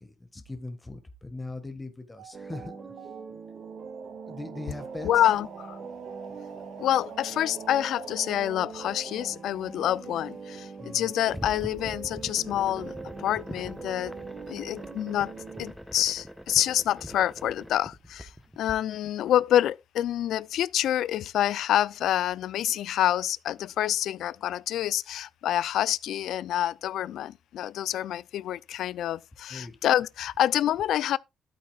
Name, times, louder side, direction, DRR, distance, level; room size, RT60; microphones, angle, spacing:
voice 1, 0.0-2.7 4.2-5.1 10.8-11.1 29.5-29.8, left 2 dB, 15° left, 1.7 m, -40 dB
sound 1, 2.2-9.3, right 7 dB, 85° right, 1.4 m, -47 dB
sound 2, 2.3-15.7, right 5 dB, 50° right, 2.4 m, -43 dB
voice 2, 5.0-5.8 6.8-14.2 14.5-15.3 15.6-18.3 18.6-31.2, left 12 dB, 75° left, 0.4 m, -27 dB
sound 3, 11.3-18.7, equal, ahead, 1.1 m, -43 dB
12.5 x 8.5 x 2.4 m
cardioid pair, 90°, 0 cm